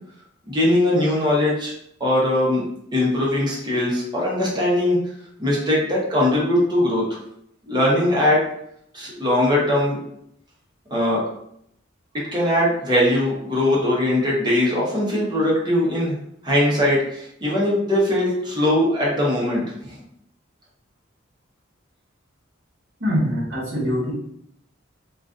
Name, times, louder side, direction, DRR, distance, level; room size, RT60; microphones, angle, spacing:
voice 1, 0.5-1.7 2.0-2.6 2.9-5.0 5.4-7.0 7.7-8.5 8.9-10.0 10.9-11.2 12.3-16.2 16.4-20.0, left 1 dB, 20° right, -5 dB, 0.7 m, -20 dB
voice 2, 23.0-24.1, equal, 60° right, -5 dB, 0.9 m, -23 dB
2.4 x 2.3 x 2.3 m, 0.73 s
head